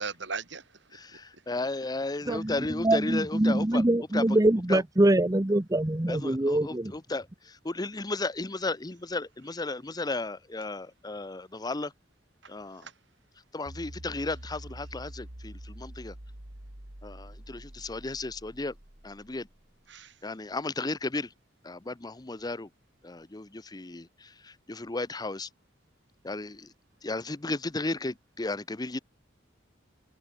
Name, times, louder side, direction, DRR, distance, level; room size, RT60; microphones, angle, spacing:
voice 1, 0.0-1.4 12.4-12.9 19.9-20.2, right 5 dB, 65° right, 6.1 m, -40 dB
voice 2, 0.9-3.8 4.1-4.4 4.7-4.8 6.1-11.9 12.5-12.9 13.5-16.1 17.0-18.7 19.0-19.5 20.2-21.3 21.6-22.7 23.0-25.5 26.2-26.7 27.0-29.0, left 2 dB, 20° left, 0.7 m, -34 dB
voice 3, 2.3-6.9, right 1 dB, 20° right, 0.9 m, -24 dB
sound 1, 13.7-19.9, right 1 dB, 80° right, 3.3 m, -46 dB
head